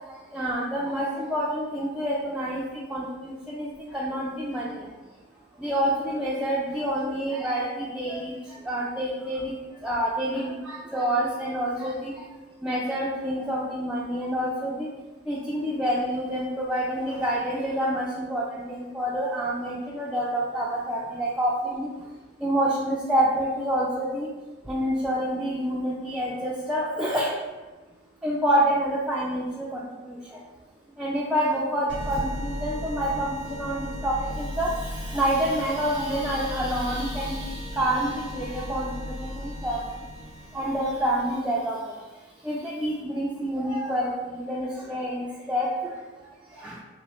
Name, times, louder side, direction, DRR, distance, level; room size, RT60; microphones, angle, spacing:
voice 1, 0.3-4.9 5.6-9.5 9.8-12.1 12.6-14.9 15.3-21.9 22.4-24.3 24.7-27.3 28.2-30.4 31.0-40.0 40.5-42.0 42.4-46.0 46.6-46.8, equal, 5° right, -6 dB, 0.3 m, -28 dB
sound 1, 31.9-41.3, left 1 dB, 75° right, 0.6 m, -36 dB
3.1 x 2.9 x 3.0 m, 1.2 s
head